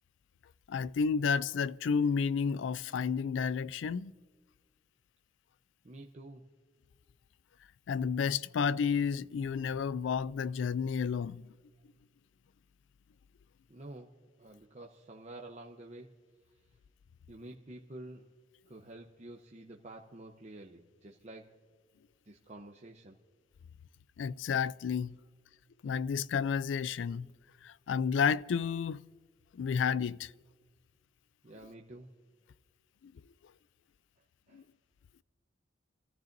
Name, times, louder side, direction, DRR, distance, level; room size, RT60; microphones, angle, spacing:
voice 1, 0.7-4.1 7.9-11.5 24.2-25.2 25.8-27.3 27.6-29.0 29.5-30.3 33.0-33.1 34.5-34.6, left 6 dB, 75° left, 0.3 m, -31 dB
voice 2, 5.8-6.4 13.7-14.1 14.4-16.1 17.3-18.3 18.7-21.5 22.3-23.2 31.4-32.1 34.5-34.6, right 2 dB, 35° right, 0.7 m, -49 dB
28.0 x 14.5 x 2.6 m
head